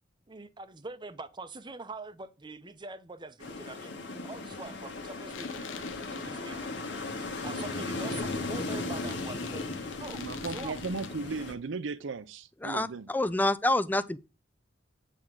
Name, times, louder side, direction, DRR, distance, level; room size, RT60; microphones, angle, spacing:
voice 1, 0.3-4.0 4.2-5.8 6.1-6.6 7.4-10.8, right 3 dB, 25° right, 0.7 m, -44 dB
sound 1, 3.4-11.5, left 2 dB, 65° left, 1.5 m, -36 dB
sound 2, 5.3-11.1, left 8 dB, 80° left, 0.9 m, -48 dB
voice 2, 10.2-13.1, right 4 dB, 75° right, 0.6 m, -36 dB
voice 3, 12.6-14.2, left 1 dB, 10° left, 0.4 m, -27 dB
8.8 x 3.6 x 6.1 m
head